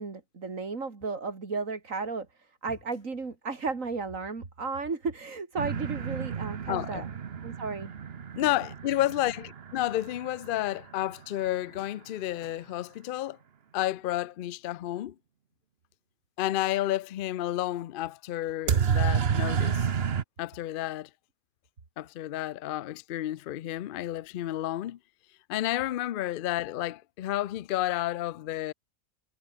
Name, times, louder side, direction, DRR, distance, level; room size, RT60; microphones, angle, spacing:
voice 1, 0.0-7.1 7.4-7.9, right 4 dB, 65° right, 3.0 m, -34 dB
sound 1, 5.6-11.3 18.7-20.2, right 7 dB, 50° right, 1.2 m, -30 dB
voice 2, 6.7-7.0 8.3-13.4 13.7-15.2 16.4-19.9 20.4-21.1 22.0-25.0 25.5-28.7, left 14 dB, 70° left, 0.5 m, -31 dB
omnidirectional pair, 1.5 m